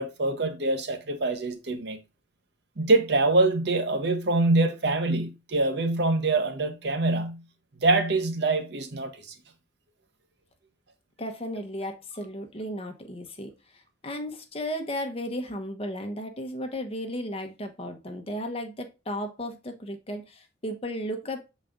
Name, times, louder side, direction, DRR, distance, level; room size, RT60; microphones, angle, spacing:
voice 1, 0.0-2.0 2.8-7.4 7.8-9.2, right 2 dB, 60° right, 0.9 m, -24 dB
voice 2, 11.2-21.5, equal, 30° left, 1.0 m, -35 dB
6.6 x 4.1 x 3.6 m
head